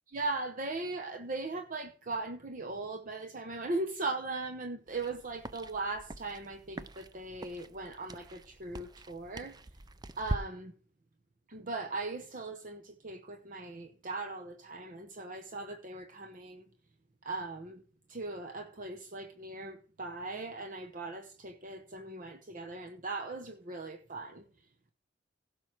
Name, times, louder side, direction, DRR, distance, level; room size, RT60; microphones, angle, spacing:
voice 1, 0.1-9.6 10.2-10.7 11.5-16.6 17.2-17.8 18.1-24.4, right 3 dB, 45° right, 0.9 m, -39 dB
sound 1, 4.9-10.4, right 2 dB, 20° right, 0.5 m, -43 dB
16.0 x 6.3 x 4.6 m
head